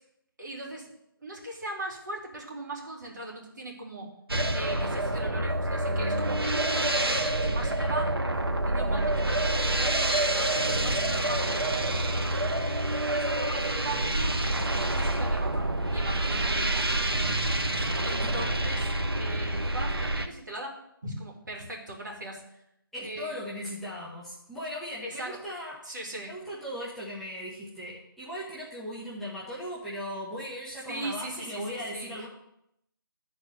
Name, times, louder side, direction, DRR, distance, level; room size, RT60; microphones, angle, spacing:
voice 1, 0.4-0.9 1.2-4.1 4.5-8.2 8.7-12.4 12.7-14.4 14.9-17.2 17.7-18.9 19.1-20.8 21.0-22.6 23.0-24.0 25.0-25.4 25.8-26.3 30.9-32.1, right 2 dB, 55° right, -1 dB, 2.7 m, -39 dB
sound 1, 4.3-20.3, right 1 dB, 85° right, 1.0 m, -27 dB
voice 2, 16.4-16.7 17.8-18.6 22.9-25.8 26.3-32.3, equal, ahead, -10 dB, 1.0 m, -38 dB
11.0 x 4.2 x 6.4 m, 0.79 s
figure-of-eight pair, 150°, 12 cm